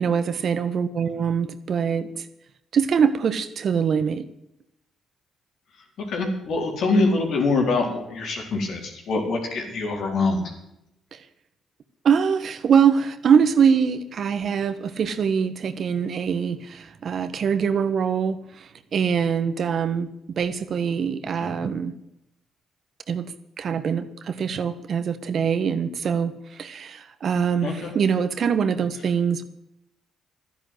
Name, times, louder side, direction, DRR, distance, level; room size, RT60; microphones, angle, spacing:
voice 1, 0.0-2.3 2.7-4.2 11.1-11.2 12.0-21.9 23.1-23.2 23.6-29.4, right 7 dB, 60° right, 12 dB, 1.3 m, -23 dB
voice 2, 6.1-10.4 21.4-21.5 27.6-27.9, left 3 dB, 70° left, 1 dB, 4.5 m, -24 dB
12.5 x 10.5 x 8.1 m, 0.82 s
supercardioid pair, 65°, 0 cm